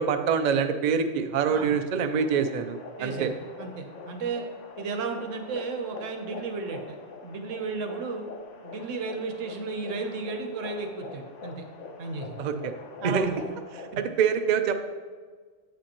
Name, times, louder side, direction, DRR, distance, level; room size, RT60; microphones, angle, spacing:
voice 1, 0.0-3.3 12.4-12.7 13.0-13.3 14.0-14.7, right 6 dB, 55° right, 7 dB, 0.5 m, -25 dB
sound 1, 1.9-14.0, left 4 dB, 80° left, 1.1 m, -44 dB
voice 2, 3.0-4.4 4.8-7.0 7.2-8.3 8.6-11.6 12.0-12.4 13.0-13.4 13.9-14.0, right 4 dB, 85° right, 5 dB, 1.2 m, -34 dB
8.0 x 7.8 x 2.9 m, 1.5 s
omnidirectional pair, 1.3 m